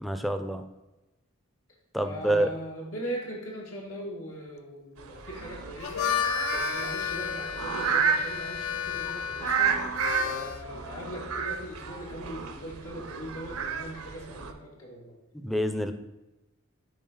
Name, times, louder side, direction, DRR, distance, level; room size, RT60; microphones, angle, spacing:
voice 1, 0.0-0.7 1.9-2.5 15.4-15.9, right 1 dB, ahead, 8 dB, 0.4 m, -27 dB
voice 2, 2.0-6.1 6.5-15.1, equal, 85° left, -3 dB, 1.9 m, -40 dB
sound 1, 5.0-14.5, right 6 dB, 90° right, 0.7 m, -32 dB
Harmonica, 5.7-10.6, left 8 dB, 70° left, 0.4 m, -32 dB
10.5 x 3.7 x 4.0 m, 1.0 s
head